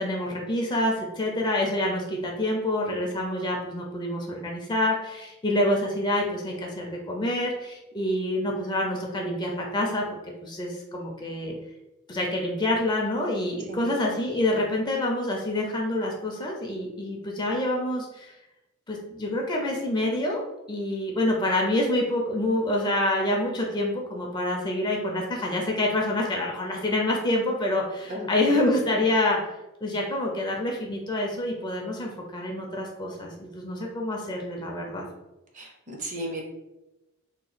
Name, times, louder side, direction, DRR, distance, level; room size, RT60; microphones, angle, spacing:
voice 1, 0.0-10.0 10.4-11.5 12.1-18.3 18.9-20.4 20.7-29.4 29.8-35.1, left 1 dB, 20° left, -1 dB, 0.4 m, -27 dB
voice 2, 28.1-28.6 35.5-36.4, right 1 dB, 35° right, 1 dB, 0.6 m, -35 dB
2.9 x 2.2 x 4.0 m, 0.97 s
head